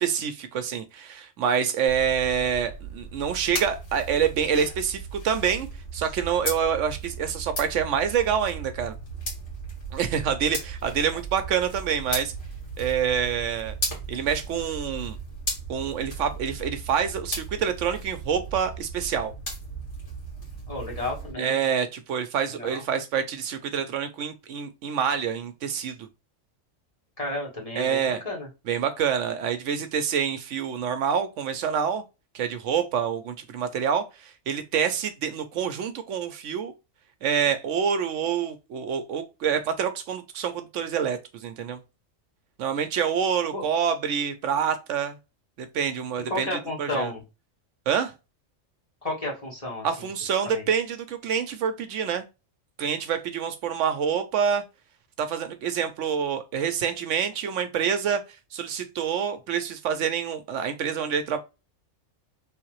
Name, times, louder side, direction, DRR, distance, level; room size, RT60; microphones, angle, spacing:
voice 1, 0.0-5.7 5.9-8.9 9.9-12.3 12.8-13.7 14.1-15.2 15.7-19.3 21.4-26.1 27.8-28.2 28.7-32.0 32.3-36.7 37.2-41.8 42.6-45.1 45.6-47.1 47.9-48.1 49.8-52.2 52.8-54.6 55.2-58.2 58.5-61.4, right 7 dB, 75° right, 0.9 m, -27 dB
sound 1, 1.9-21.3, right 2 dB, 80° left, 2.2 m, -36 dB
voice 2, 20.7-21.6 22.5-22.8 27.2-28.5 43.5-43.6 46.3-47.2 49.0-50.1 50.4-50.7, left 1 dB, 30° left, 1.4 m, -32 dB
3.6 x 2.8 x 2.9 m
omnidirectional pair, 1.3 m